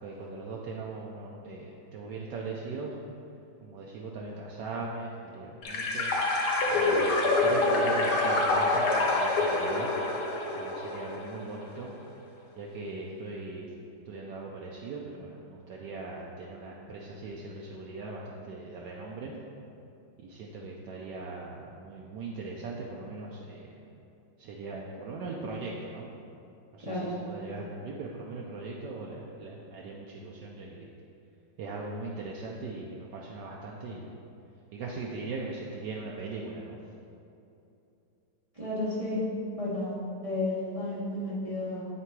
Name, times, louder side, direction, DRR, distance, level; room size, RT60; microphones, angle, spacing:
voice 1, 0.0-3.0 3.6-6.1 6.7-9.9 10.5-11.9 12.6-19.3 20.2-23.7 24.4-26.1 26.7-30.9 31.6-34.2 34.7-36.8, right 3 dB, 75° right, -2 dB, 1.0 m, -40 dB
sound 1, 5.6-11.4, left 2 dB, 60° left, 1.3 m, -26 dB
voice 2, 38.5-39.2 39.6-40.0 40.2-41.8, left 2 dB, 55° right, -8 dB, 0.3 m, -32 dB
8.7 x 3.4 x 4.6 m, 2.7 s
omnidirectional pair, 2.4 m